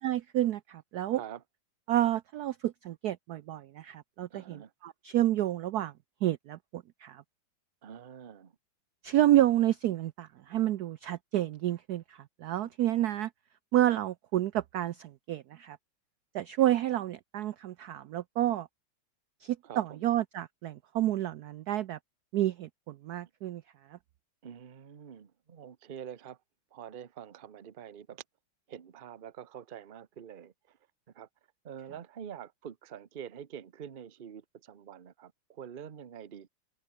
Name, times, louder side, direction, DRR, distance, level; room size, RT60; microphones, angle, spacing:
voice 1, 0.0-1.2 1.9-5.9 6.2-7.2 9.0-13.3 13.7-15.8 16.3-18.7 19.4-22.0 22.3-23.6 23.9-24.0, right 13 dB, 75° right, 0.9 m, -29 dB
voice 2, 4.3-4.7 7.8-8.6 19.6-20.1 24.4-26.4 26.7-28.2 28.7-30.8 31.1-31.3 31.6-36.5, right 9 dB, 45° right, 0.7 m, -46 dB
omnidirectional pair, 2.3 m